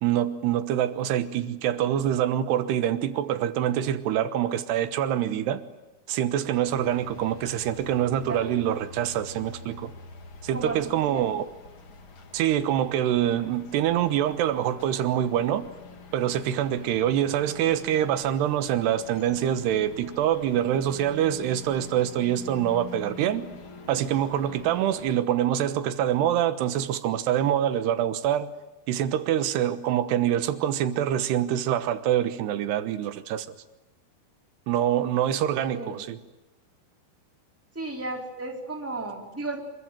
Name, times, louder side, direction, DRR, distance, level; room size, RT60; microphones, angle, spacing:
voice 1, 0.0-5.6 6.1-9.9 10.4-11.4 12.3-15.6 16.1-23.5 23.9-28.5 28.9-33.5 34.7-36.2, right 11 dB, 85° right, 3.3 m, -25 dB
sound 1, 6.6-25.2, left 4 dB, 35° left, 2.5 m, -46 dB
voice 2, 8.2-8.6 10.5-11.3 35.7-36.0 37.7-39.6, right 2 dB, 5° right, 3.3 m, -34 dB
26.5 x 23.5 x 9.1 m
omnidirectional pair, 4.6 m